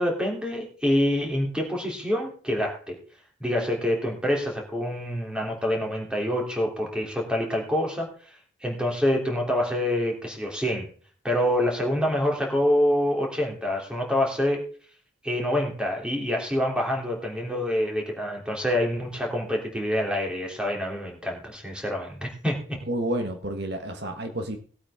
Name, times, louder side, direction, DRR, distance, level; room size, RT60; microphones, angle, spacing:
voice 1, 0.0-3.0 3.4-10.9 11.2-14.6 15.2-22.5, left 1 dB, 5° right, -1 dB, 3.2 m, -26 dB
voice 2, 22.9-24.6, right 1 dB, 55° right, 5 dB, 1.5 m, -30 dB
18.5 x 8.6 x 3.7 m, 0.43 s
head